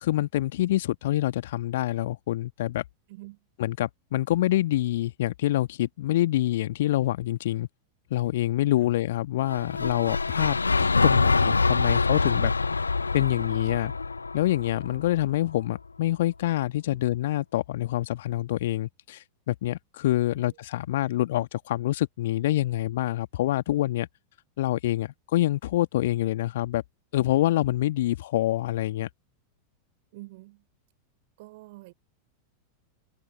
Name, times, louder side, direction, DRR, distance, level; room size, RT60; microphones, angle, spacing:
voice 1, 0.0-2.8 3.6-7.7 8.1-12.5 13.1-13.9 14.3-24.1 24.6-26.8 27.1-29.1, left 14 dB, 55° left, 1.7 m, -26 dB
voice 2, 3.1-3.5 8.8-8.9 16.9-17.0 20.3-20.5 20.9-21.0 30.1-30.6 31.4-31.9, right 21 dB, 50° right, 4.8 m, -46 dB
sound 1, 9.4-15.6, left 4 dB, 80° left, 0.4 m, -25 dB
figure-of-eight pair, 90°, 0 cm